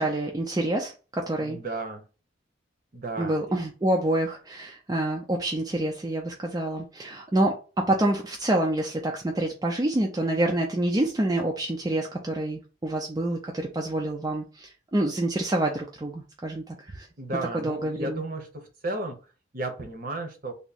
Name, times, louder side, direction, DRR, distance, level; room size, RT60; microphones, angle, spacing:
voice 1, 0.0-1.6 3.2-17.1 17.5-18.2, right 1 dB, 20° right, 1 dB, 0.4 m, -27 dB
voice 2, 1.4-2.0 2.9-3.6 17.2-19.2 19.5-20.5, right 2 dB, 45° right, 4 dB, 0.8 m, -34 dB
3.5 x 2.0 x 4.0 m, 0.34 s
head